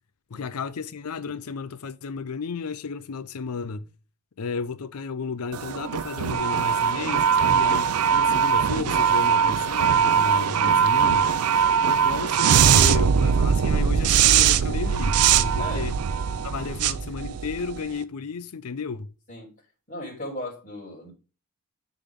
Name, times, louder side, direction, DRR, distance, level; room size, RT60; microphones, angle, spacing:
voice 1, 0.3-3.9 4.4-11.4 11.8-16.0 16.4-19.1, left 5 dB, 85° left, 0.6 m, -33 dB
sound 1, 5.5-17.9, right 7 dB, 85° right, 0.5 m, -21 dB
voice 2, 19.9-21.1, left 1 dB, 35° left, 3.2 m, -36 dB
10.0 x 4.0 x 3.6 m
head